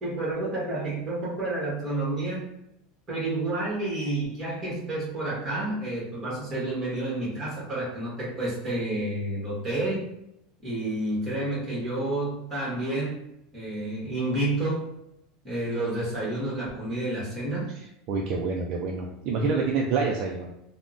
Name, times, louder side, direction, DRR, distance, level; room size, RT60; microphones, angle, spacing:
voice 1, 0.0-2.5 3.1-10.1 10.6-13.2 13.5-14.9 15.4-17.7, right 2 dB, 15° right, -7 dB, 1.3 m, -30 dB
voice 2, 18.1-20.5, right 4 dB, 45° right, 0 dB, 0.3 m, -27 dB
3.4 x 2.0 x 2.5 m, 0.82 s
supercardioid pair, 155°, 0 cm